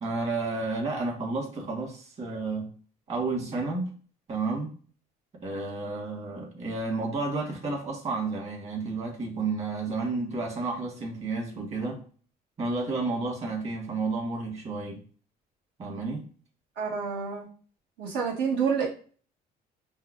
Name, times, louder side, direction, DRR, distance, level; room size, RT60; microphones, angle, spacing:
voice 1, 0.0-2.7 3.1-3.9 4.3-4.7 5.4-12.0 12.6-15.0 15.8-16.2, right 3 dB, 40° right, -2 dB, 1.5 m, -31 dB
voice 2, 16.8-17.5 18.0-18.9, right 6 dB, 85° right, -4 dB, 1.1 m, -28 dB
5.2 x 2.1 x 2.5 m, 0.41 s
cardioid pair, 110°, 17 cm